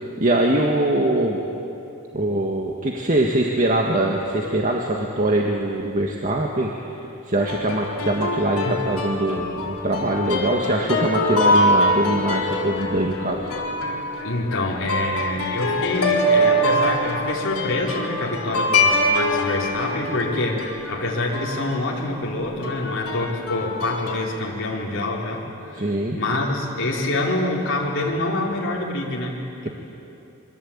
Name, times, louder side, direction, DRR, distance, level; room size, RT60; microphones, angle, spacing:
voice 1, 0.2-1.4 2.1-6.7 7.3-13.4 25.8-26.2, right 1 dB, 35° right, 0 dB, 1.8 m, -22 dB
sound 1, 7.4-21.7 22.6-24.2, left 1 dB, 75° left, 4.3 m, -24 dB
voice 2, 14.2-29.3 29.6-29.7, left 2 dB, 55° left, -4 dB, 4.2 m, -26 dB
26.5 x 23.5 x 8.8 m, 2.9 s
head